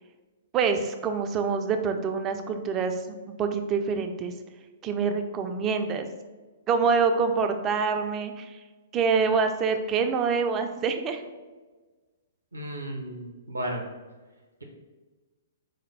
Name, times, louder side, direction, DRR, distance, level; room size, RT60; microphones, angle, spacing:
voice 1, 0.5-4.3 4.8-6.1 6.7-8.6 8.9-11.2, right 5 dB, 25° right, 6 dB, 0.3 m, -26 dB
voice 2, 12.5-13.8, right 1 dB, 75° right, 1 dB, 0.6 m, -34 dB
4.2 x 2.2 x 3.2 m, 1.3 s
figure-of-eight pair, 115°, 0 cm